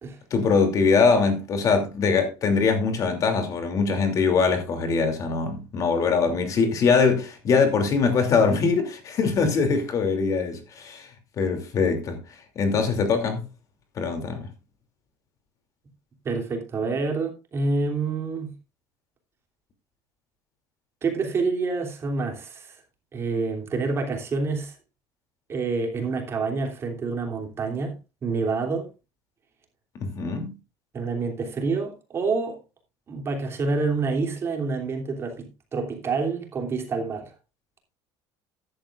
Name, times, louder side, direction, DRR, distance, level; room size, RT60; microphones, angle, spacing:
voice 1, 0.3-11.1 11.4-12.2 12.6-13.4 14.0-14.5 30.0-30.5, left 5 dB, 40° left, 2.8 m, -22 dB
voice 2, 16.2-18.5 21.0-22.8 23.1-24.7 25.5-27.9 28.2-28.9 30.9-32.6 33.1-37.3, right 4 dB, 30° right, 3.0 m, -27 dB
14.0 x 11.0 x 2.5 m
cardioid pair, 140°, 9 cm